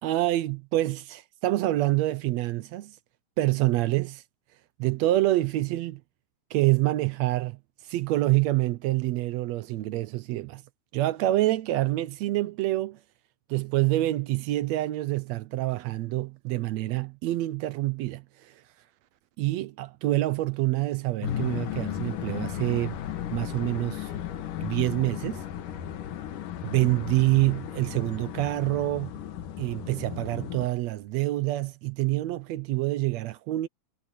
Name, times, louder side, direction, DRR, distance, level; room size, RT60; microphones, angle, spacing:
voice 1, 0.0-3.0 3.4-4.2 4.8-6.0 6.5-7.6 7.9-10.6 10.9-13.0 13.5-18.2 19.4-23.0 23.3-24.1 24.6-25.4 26.6-29.1 29.6-33.7, right 17 dB, 75° right, 1.7 m, -26 dB
sound 1, 21.2-30.7, left 10 dB, 85° left, 3.0 m, -35 dB
omnidirectional pair, 3.6 m